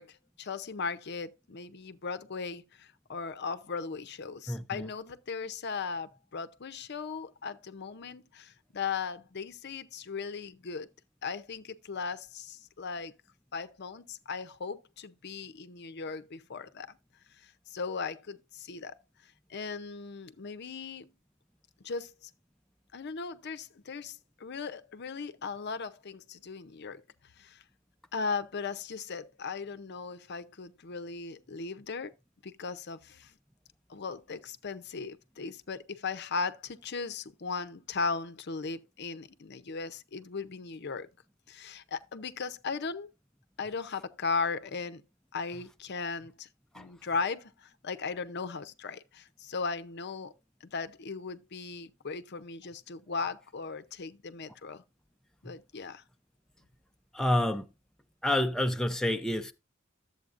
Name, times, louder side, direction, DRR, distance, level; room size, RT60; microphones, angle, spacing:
voice 1, 0.0-10.9 11.2-13.1 13.5-17.0 17.3-19.0 19.5-21.1 21.8-22.3 22.9-27.0 27.4-27.6 28.1-32.1 32.4-33.3 33.9-41.1 41.5-43.1 43.6-45.0 45.3-46.5 46.7-50.3 50.6-54.8 55.4-56.0, left 4 dB, 55° left, 0.6 m, -37 dB
voice 2, 4.5-4.9 46.7-46.9 57.1-57.7 58.2-59.5, left 1 dB, 5° left, 0.4 m, -28 dB
12.0 x 7.9 x 2.5 m
head